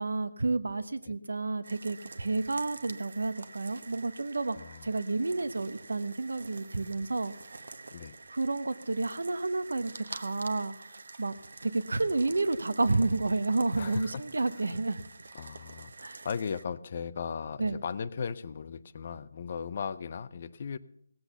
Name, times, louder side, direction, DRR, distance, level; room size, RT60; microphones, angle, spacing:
voice 1, 0.0-4.6 4.8-7.3 8.3-10.7 11.2-11.3 11.6-15.0 16.0-16.3 17.6-17.8, right 3 dB, 90° right, 13 dB, 1.1 m, -30 dB
sound 1, 1.6-16.6, right 3 dB, 60° right, 1.1 m, -48 dB
voice 2, 4.5-4.9 7.9-8.1 13.7-14.2 14.5-14.7 15.3-20.8, left 6 dB, 35° left, 15 dB, 0.5 m, -37 dB
17.0 x 8.0 x 6.9 m, 0.71 s
hypercardioid pair, 170°, 0 cm